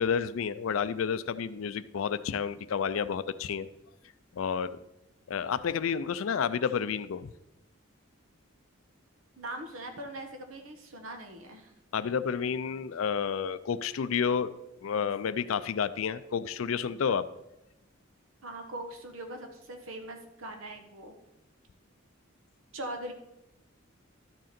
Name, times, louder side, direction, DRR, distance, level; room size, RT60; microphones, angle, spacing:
voice 1, 0.0-3.7 4.3-4.7 5.3-7.3 11.9-14.5 14.8-17.3, left 7 dB, 80° left, 14 dB, 0.4 m, -30 dB
voice 2, 9.4-11.7 18.4-21.1 22.7-23.1, right 1 dB, 90° right, 5 dB, 1.3 m, -41 dB
11.5 x 6.4 x 4.3 m, 0.90 s
head